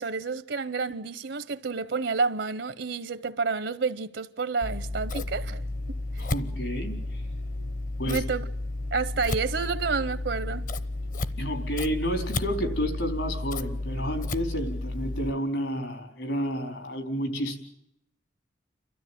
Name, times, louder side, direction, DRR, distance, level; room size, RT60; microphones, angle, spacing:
voice 1, 0.0-5.6 5.9-6.0 8.0-8.4 8.9-10.7, right 4 dB, 75° right, 0.8 m, -29 dB
Scissors, 4.6-15.3, left 2 dB, 45° left, 0.9 m, -32 dB
voice 2, 6.2-7.2 8.0-8.2 11.4-17.6, equal, 75° left, 4.4 m, -30 dB
30.0 x 13.5 x 9.2 m
head